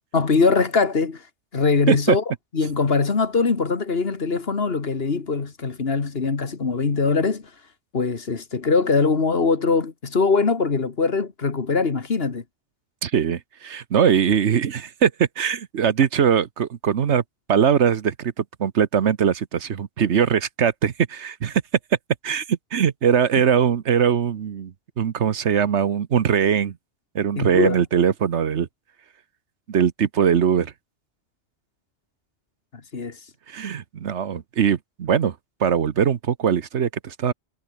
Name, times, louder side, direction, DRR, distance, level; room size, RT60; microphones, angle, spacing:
voice 1, 0.1-1.3 1.5-2.2 2.5-7.5 7.9-12.4 27.4-27.8 32.9-33.2, left 4 dB, 55° left, 2.0 m, -22 dB
voice 2, 13.0-17.2 17.5-21.6 22.2-26.8 27.1-28.7 29.7-30.7 33.5-35.3 35.6-37.3, right 8 dB, 70° right, 1.3 m, -21 dB
omnidirectional pair, 1.2 m